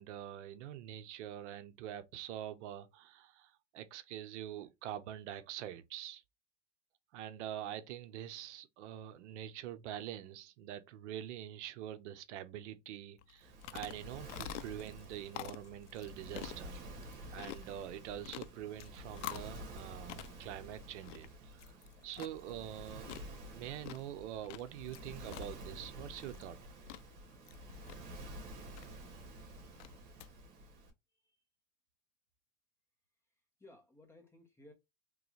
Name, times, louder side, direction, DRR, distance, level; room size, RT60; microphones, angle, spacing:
voice 1, 0.0-6.2 7.1-21.8 22.0-23.1 23.5-26.6, right 11 dB, 70° right, 0.7 m, -45 dB
sound 1, 13.2-30.3, left 15 dB, 75° left, 0.5 m, -50 dB
Waves surf, 13.4-30.9, right 1 dB, 50° right, 2.0 m, -50 dB
voice 2, 31.1-31.4 33.3-34.7, left 1 dB, 5° left, 0.9 m, -60 dB
3.8 x 3.1 x 3.1 m
supercardioid pair, 145°, 37 cm